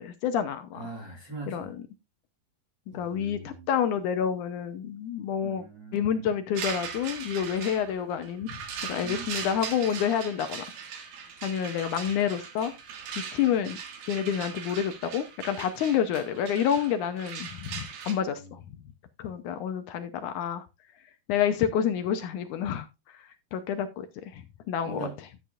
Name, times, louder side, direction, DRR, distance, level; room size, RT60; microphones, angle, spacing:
voice 1, 0.0-0.8 1.5-1.7 2.9-5.6 5.9-8.6 8.8-10.6 11.4-12.7 13.3-13.8 14.1-18.6 19.2-20.7 21.3-22.9 23.1-25.1, left 8 dB, 70° left, 2.1 m, -28 dB
voice 2, 0.7-1.7 2.9-3.7 5.4-6.3 9.0-9.6 18.3-18.5 24.9-25.4, right 3 dB, 40° right, 1.8 m, -42 dB
sound 1, 6.6-18.1, right 7 dB, 85° right, 3.5 m, -39 dB
12.5 x 8.7 x 2.5 m
omnidirectional pair, 3.9 m